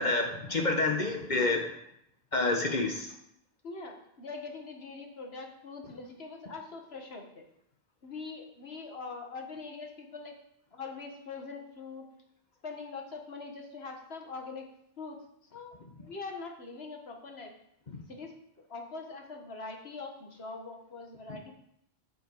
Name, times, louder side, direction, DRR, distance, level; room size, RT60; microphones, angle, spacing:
voice 1, 0.0-1.7 2.3-3.1, left 2 dB, 45° left, 3 dB, 1.2 m, -28 dB
voice 2, 3.6-7.5 8.0-10.4 10.7-12.1 12.6-14.7 15.0-17.5 18.1-18.3 18.7-21.5, left 4 dB, 85° left, 2 dB, 1.8 m, -43 dB
13.5 x 5.5 x 4.7 m, 0.75 s
omnidirectional pair, 1.0 m